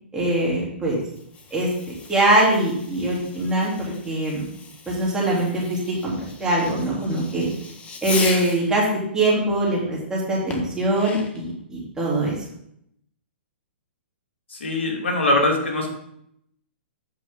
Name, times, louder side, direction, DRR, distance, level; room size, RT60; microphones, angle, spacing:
voice 1, 0.1-1.0 1.5-4.4 4.9-7.5 8.0-8.9 9.1-12.4, right 1 dB, 10° right, -5 dB, 3.3 m, -22 dB
Fireworks, 1.0-8.7 10.5-11.5, left 4 dB, 20° left, 1.2 m, -37 dB
voice 2, 14.5-15.9, left 1 dB, 85° left, 1 dB, 2.2 m, -22 dB
8.5 x 7.2 x 3.8 m, 0.72 s
hypercardioid pair, 130°, 6 cm